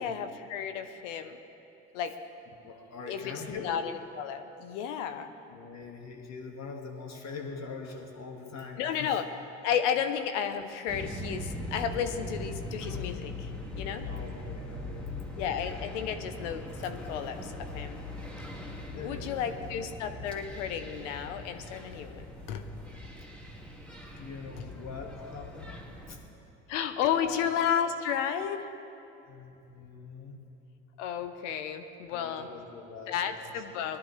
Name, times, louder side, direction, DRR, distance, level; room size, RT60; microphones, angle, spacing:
voice 1, 0.0-1.4 1.9-2.1 3.1-5.3 8.8-9.2 9.6-13.5 13.8-14.1 15.4-18.0 18.9-22.7 26.7-28.7 31.0-32.5 33.1-34.0, left 8 dB, 90° left, 9 dB, 0.8 m, -32 dB
voice 2, 2.6-3.7 5.5-9.2 14.1-15.2 18.9-19.6 24.1-25.8 26.1-26.4 27.0-27.5 29.3-30.4 32.1-33.5, left 4 dB, 50° left, 2 dB, 2.0 m, -43 dB
sound 1, 10.9-26.2, left 2 dB, 5° left, 2.1 m, -40 dB
19.0 x 12.0 x 3.3 m, 2.8 s
supercardioid pair, 70°, 35 cm